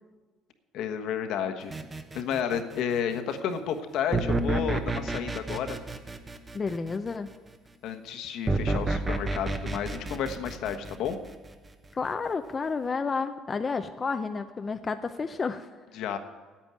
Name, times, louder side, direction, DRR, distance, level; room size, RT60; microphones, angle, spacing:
voice 1, 0.7-1.7 2.1-5.8 7.8-11.2 15.9-16.2, left 8 dB, 70° left, 6 dB, 1.2 m, -31 dB
sound 1, 1.7-2.9 4.1-7.2 8.5-11.7, right 2 dB, 20° right, 1.0 m, -30 dB
voice 2, 6.5-7.3 11.9-15.7, left 4 dB, 25° left, 8 dB, 0.5 m, -31 dB
9.0 x 8.8 x 9.0 m, 1.4 s
cardioid pair, 115°, 0 cm